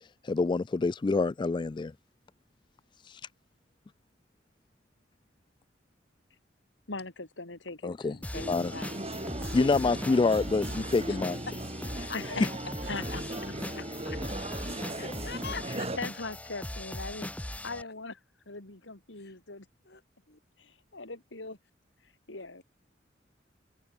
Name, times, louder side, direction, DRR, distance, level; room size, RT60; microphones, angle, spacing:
voice 1, 0.3-1.9 7.8-8.1 8.5-8.7 9.5-11.4, left 3 dB, 25° left, 0.3 m, -26 dB
voice 2, 6.9-8.3 12.0-12.5 12.9-14.1 14.5-14.8 15.7-18.2 18.4-19.7 20.6-21.6 22.0-22.6, left 3 dB, 90° left, 3.3 m, -41 dB
sound 1, 8.2-17.8, left 1 dB, 10° left, 1.1 m, -40 dB
voice 3, 8.3-8.9 11.1-11.2 11.5-11.6 12.1-12.4 13.8-13.9 14.1-14.2 14.9-15.9 19.2-19.4 19.9-20.0 20.3-20.4, left 4 dB, 60° left, 6.4 m, -41 dB
sound 2, 8.3-16.0, right 1 dB, 35° right, 3.8 m, -38 dB
head